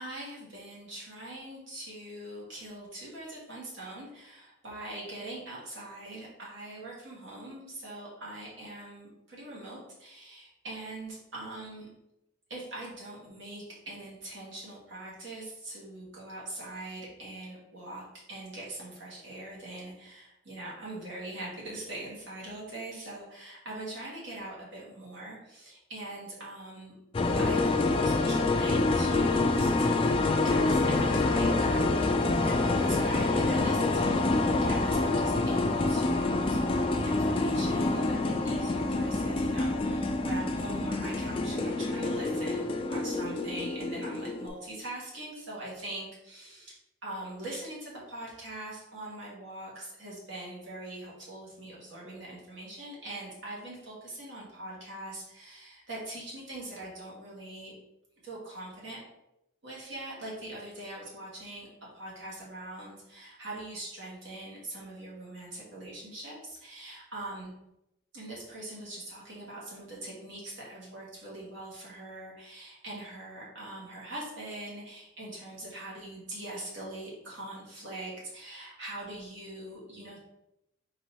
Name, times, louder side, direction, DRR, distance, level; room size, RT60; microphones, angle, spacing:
voice 1, 0.0-11.9 12.5-26.9 27.4-46.7 47.0-57.7 58.2-59.0 59.6-61.7 61.9-67.5 68.1-80.2, right 1 dB, 60° right, -5 dB, 1.6 m, -42 dB
sound 1, 27.1-44.5, left 2 dB, 25° left, 0.3 m, -27 dB
4.0 x 2.7 x 4.3 m, 0.88 s
head